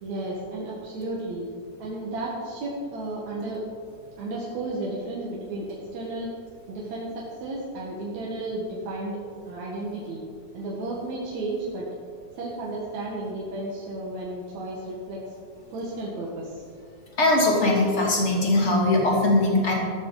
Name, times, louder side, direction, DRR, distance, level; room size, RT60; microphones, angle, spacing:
voice 1, 0.0-1.4 1.8-3.6 4.2-6.3 6.7-9.2 9.4-10.2 10.5-11.9 12.4-15.2 15.7-16.6, right 2 dB, 65° right, -4 dB, 2.8 m, -33 dB
voice 2, 17.2-19.8, left 2 dB, 20° left, -3 dB, 2.6 m, -21 dB
14.5 x 13.0 x 3.9 m, 2.2 s
omnidirectional pair, 3.5 m